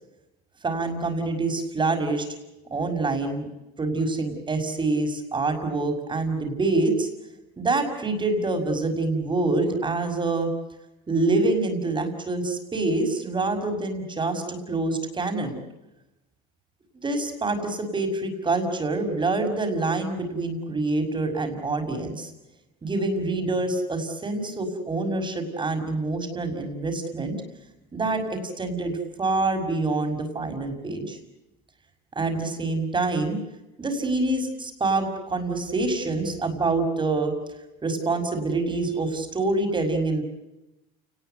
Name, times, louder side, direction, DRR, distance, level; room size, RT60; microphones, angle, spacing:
voice 1, 0.6-2.3 2.7-3.5 3.8-7.1 7.6-10.5 11.1-15.6 17.0-22.3 22.8-27.4 27.9-31.2 32.1-33.4 33.8-37.3 37.8-40.2, right 3 dB, 25° right, 6 dB, 6.2 m, -26 dB
29.5 x 20.0 x 8.1 m, 0.97 s
supercardioid pair, 100°, 20 cm